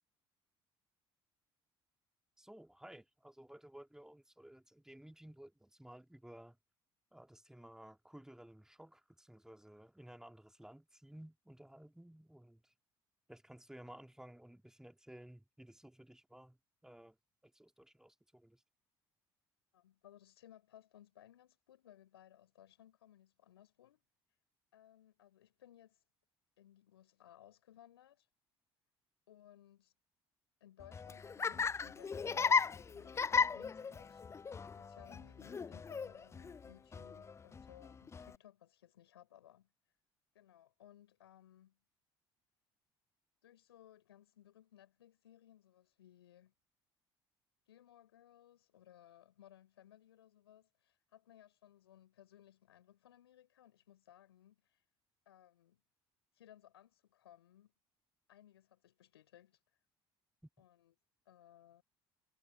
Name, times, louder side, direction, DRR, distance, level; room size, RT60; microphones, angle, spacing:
voice 1, 2.4-6.6 7.1-12.7 13.3-16.6 16.8-17.2 17.4-18.6, right 1 dB, 5° right, 3.3 m, -56 dB
voice 2, 19.7-24.1 24.7-26.0 26.6-28.3 29.3-29.9 30.6-34.4 34.8-39.7 40.3-41.8 43.4-46.5 47.7-54.8 55.3-55.8 56.3-57.7 58.3-59.6 60.6-60.9 61.3-61.8, left 11 dB, 75° left, 5.4 m, -62 dB
Laughter, 30.8-38.4, left 5 dB, 20° left, 0.4 m, -36 dB
figure-of-eight pair, 55°, 13 cm